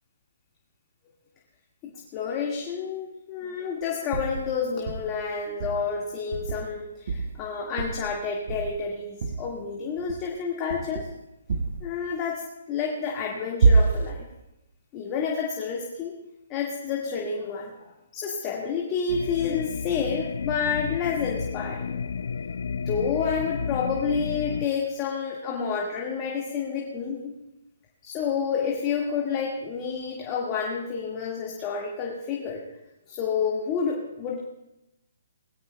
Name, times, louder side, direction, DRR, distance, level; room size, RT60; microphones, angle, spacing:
voice 1, 1.8-11.1 11.8-12.4 12.7-14.3 14.9-16.2 16.5-22.0 22.7-27.3 28.0-32.6 33.1-34.4, left 6 dB, 20° left, -2 dB, 1.9 m, -29 dB
sound 1, 4.1-4.5 4.9-5.2 5.6-5.9 6.3-6.8 7.1-7.4 7.8-8.2 8.5-8.9 9.2-9.5 10.0-10.3 10.7-11.1 11.5-11.9 13.6-14.2, right 4 dB, 50° right, 1.2 m, -25 dB
sound 2, 19.1-24.7, left 6 dB, 65° left, 0.5 m, -32 dB
21.0 x 14.5 x 2.3 m, 0.91 s
hypercardioid pair, 160°, 0 cm